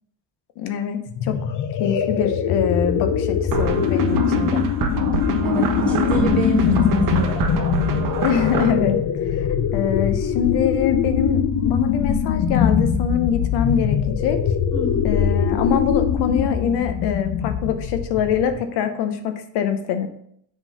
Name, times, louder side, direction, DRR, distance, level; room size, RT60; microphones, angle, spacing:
voice 1, 0.6-1.5 1.8-4.6 8.2-9.0 9.3-14.4 15.0-20.1, left 7 dB, 90° left, 7 dB, 0.9 m, -24 dB
sound 1, 1.1-18.6, left 8 dB, 50° left, 0.6 m, -22 dB
sound 2, 3.5-8.7, right 6 dB, 55° right, 0.9 m, -25 dB
voice 2, 5.4-7.6 14.7-15.1, right 1 dB, 5° left, -4 dB, 2.0 m, -26 dB
7.3 x 3.8 x 5.5 m, 0.69 s
cardioid pair, 150°, 39 cm